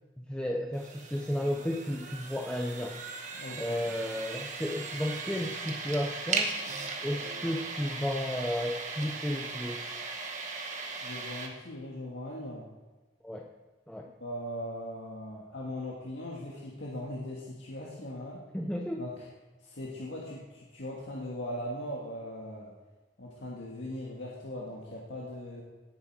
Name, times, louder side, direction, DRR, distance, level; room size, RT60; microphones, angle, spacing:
voice 1, 0.2-3.0 3.6-6.5 7.0-10.0 13.2-13.5 13.9-14.1 18.5-19.0, left 1 dB, 5° left, 0 dB, 0.7 m, -33 dB
sound 1, 0.7-11.5, right 4 dB, 40° right, 1.5 m, -38 dB
voice 2, 3.3-3.8 11.0-12.7 14.2-18.4 19.0-19.3 19.6-22.7 23.2-25.6, left 1 dB, 75° left, -4 dB, 1.9 m, -39 dB
18.0 x 7.5 x 4.7 m, 1.2 s
head